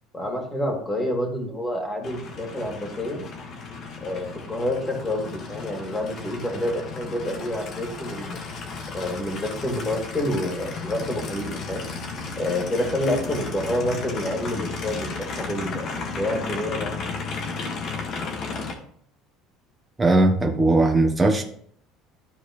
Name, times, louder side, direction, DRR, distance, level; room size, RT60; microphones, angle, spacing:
voice 1, 0.1-3.3 4.0-8.4 8.9-11.8 12.4-15.9 16.2-17.2, left 1 dB, 20° left, 2.8 m, -28 dB
Aircraft, 2.0-18.7, left 4 dB, 50° left, 1.8 m, -34 dB
voice 2, 20.0-21.4, right 2 dB, 15° right, 1.1 m, -19 dB
12.5 x 4.6 x 3.2 m
supercardioid pair, 100°, 0 cm